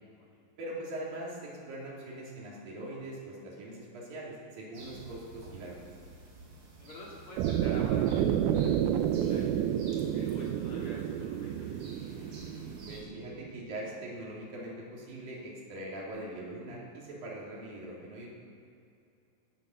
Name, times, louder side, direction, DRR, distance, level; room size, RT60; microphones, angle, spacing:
voice 1, 0.6-5.8 12.9-18.3, right 1 dB, 65° right, -5 dB, 4.8 m, -42 dB
sound 1, 4.7-13.0, right 3 dB, 35° right, 3.1 m, -49 dB
voice 2, 6.8-11.7, left 1 dB, 40° left, -5 dB, 3.4 m, -50 dB
sound 2, 7.4-13.5, right 10 dB, 85° right, 2.6 m, -30 dB
17.0 x 9.4 x 6.7 m, 2.5 s
omnidirectional pair, 4.4 m